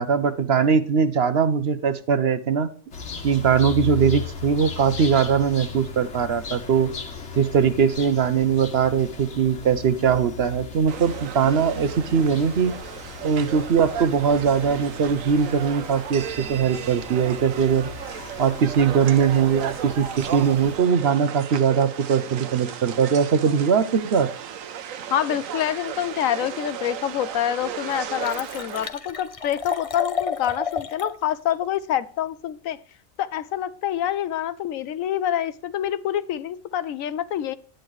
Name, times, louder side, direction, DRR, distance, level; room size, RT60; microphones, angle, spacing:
voice 1, 0.0-2.7 3.2-6.9 7.4-12.7 13.2-17.9 18.4-24.3, right 7 dB, 55° right, 11 dB, 0.9 m, -21 dB
sound 1, 2.9-20.9, left 5 dB, 60° left, 1.5 m, -37 dB
sound 2, 10.9-28.9, right 9 dB, 80° right, 1.2 m, -35 dB
voice 2, 25.1-32.8 33.2-37.6, left 10 dB, 80° left, 15 dB, 1.1 m, -26 dB
Liquid, 27.1-27.2 27.6-27.7 27.9-31.1 31.5-31.6, left 6 dB, 35° left, 0.6 m, -31 dB
10.5 x 8.9 x 3.1 m, 0.43 s
omnidirectional pair, 1.4 m